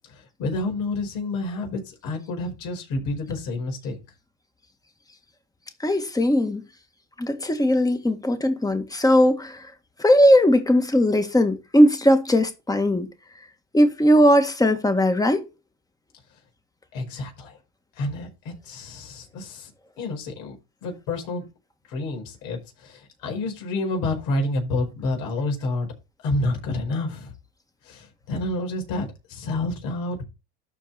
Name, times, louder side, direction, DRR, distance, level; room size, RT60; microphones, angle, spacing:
voice 1, 0.1-4.0 16.9-17.6 18.0-19.7 20.0-20.5 20.8-21.4 21.9-25.9 26.2-27.3 27.8-30.2, left 2 dB, 70° left, 5.1 m, -29 dB
voice 2, 5.8-6.6 7.2-9.7 10.0-13.1 13.7-15.4, equal, 10° left, 1.9 m, -19 dB
13.0 x 4.7 x 4.3 m
supercardioid pair, 90°, 36 cm